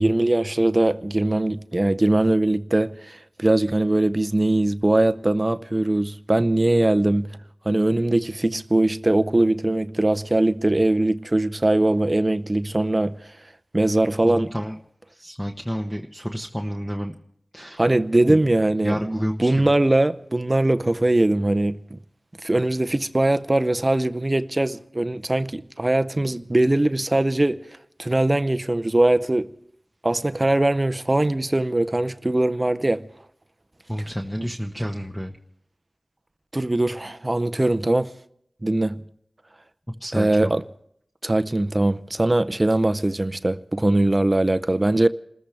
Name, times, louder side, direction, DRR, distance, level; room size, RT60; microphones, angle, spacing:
voice 1, 0.0-7.3 7.7-13.3 13.7-14.5 17.8-22.0 22.4-27.6 28.0-29.5 30.0-33.1 36.5-38.1 38.6-39.0 40.2-40.6 41.2-45.1, right 1 dB, 30° right, 0.6 m, -21 dB
voice 2, 14.2-14.8 15.1-17.1 17.5-17.8 18.3-18.4 18.8-19.7 33.9-35.4 40.0-40.5, equal, 5° left, 1.1 m, -30 dB
28.5 x 14.0 x 3.4 m
wide cardioid pair, 55°, 0 cm